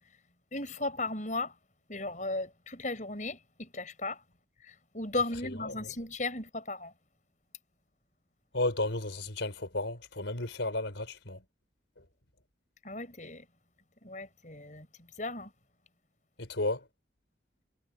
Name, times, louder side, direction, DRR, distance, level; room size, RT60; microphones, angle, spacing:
voice 1, 0.5-1.5 1.9-4.2 4.6-6.9 12.8-13.4 14.0-14.9 15.2-15.5, left 2 dB, 40° left, 6.6 m, -36 dB
voice 2, 5.4-5.8 8.5-11.4 16.4-16.8, left 2 dB, 85° left, 4.2 m, -33 dB
head